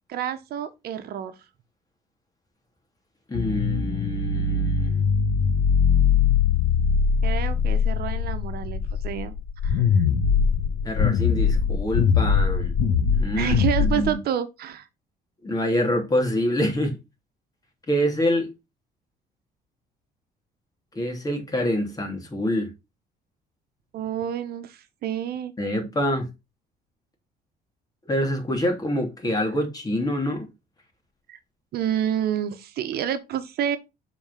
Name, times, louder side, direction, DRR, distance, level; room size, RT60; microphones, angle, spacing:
voice 1, 0.1-1.3 7.2-9.3 9.6-10.1 13.4-14.9 23.9-25.5 31.3-31.4 31.7-33.8, right 10 dB, 65° right, 1.1 m, -29 dB
sound 1, 3.3-14.1, left 6 dB, 85° left, 1.5 m, -22 dB
voice 2, 3.3-5.0 10.8-12.7 13.1-14.2 15.4-17.0 17.9-18.5 20.9-22.7 25.6-26.3 28.1-30.5, left 1 dB, 20° left, 2.9 m, -26 dB
7.1 x 4.3 x 5.7 m
cardioid pair, 110°, 17 cm